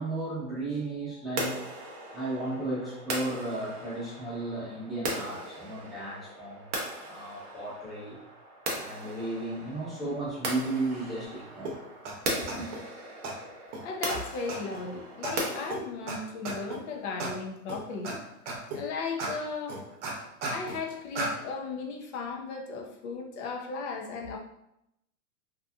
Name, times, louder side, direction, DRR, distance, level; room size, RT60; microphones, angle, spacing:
voice 1, 0.0-8.2 8.7-11.8 12.5-12.7, right 2 dB, ahead, -10 dB, 0.8 m, -35 dB
sound 1, 1.4-15.7, right 1 dB, 30° right, 0.5 m, -38 dB
sound 2, 11.6-11.7 12.0-12.1 12.5-12.8 13.2-13.3 13.7-13.8 14.1-14.2 14.5-14.8 15.2-15.3 15.7-15.8 16.1-16.2 16.4-16.8 17.2-17.3 17.7-18.1 18.5-18.8 19.2-19.3 19.7-20.8 21.1-21.3, right 3 dB, 55° right, 0.8 m, -34 dB
voice 2, 13.8-18.2 18.7-19.8 20.5-24.4, left 4 dB, 50° left, 1 dB, 0.7 m, -36 dB
2.7 x 2.4 x 2.3 m, 0.81 s
hypercardioid pair, 135°, 44 cm